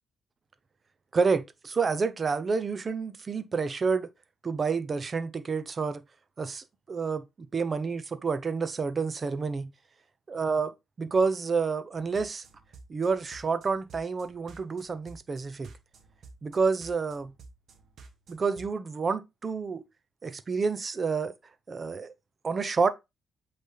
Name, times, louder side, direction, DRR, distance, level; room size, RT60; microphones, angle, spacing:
voice 1, 1.1-4.1 4.4-6.0 6.4-9.7 10.3-12.4 12.9-15.7 16.4-17.3 18.3-19.8 20.2-21.3 21.7-22.1 22.4-22.9, right 5 dB, 35° right, 0.8 m, -29 dB
sound 1, 12.0-18.7, right 4 dB, 60° right, 1.3 m, -52 dB
8.2 x 3.4 x 4.0 m
cardioid pair, 90°, 0 cm